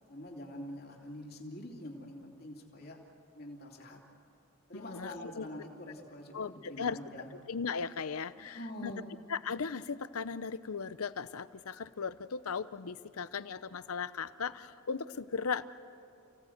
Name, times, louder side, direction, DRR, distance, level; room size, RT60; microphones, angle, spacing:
voice 1, 0.1-3.0 3.3-4.0 4.7-7.3 8.4-9.0, left 1 dB, 45° left, 0 dB, 2.9 m, -45 dB
voice 2, 4.7-5.5 6.3-7.0 7.5-8.9 9.3-15.6, left 5 dB, 80° left, 15 dB, 0.7 m, -37 dB
29.5 x 17.0 x 7.9 m, 2.7 s
head